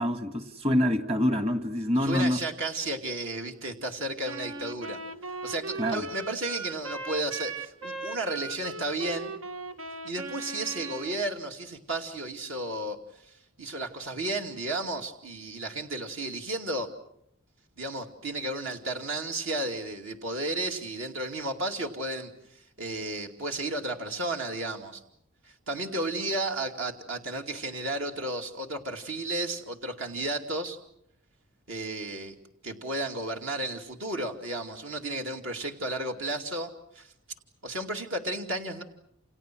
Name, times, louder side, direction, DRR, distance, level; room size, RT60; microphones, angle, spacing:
voice 1, 0.0-2.4 5.8-6.1, left 1 dB, 30° right, 1.7 m, -26 dB
voice 2, 2.0-5.0 5.4-9.3 10.0-13.0 13.3-16.9 17.8-25.0 25.4-30.8 31.7-32.3 32.6-37.1 37.6-38.8, right 2 dB, 65° right, 2.6 m, -33 dB
Wind instrument woodwind instrument, 4.2-11.2, right 3 dB, 80° right, 1.6 m, -38 dB
29.0 x 29.0 x 6.2 m
head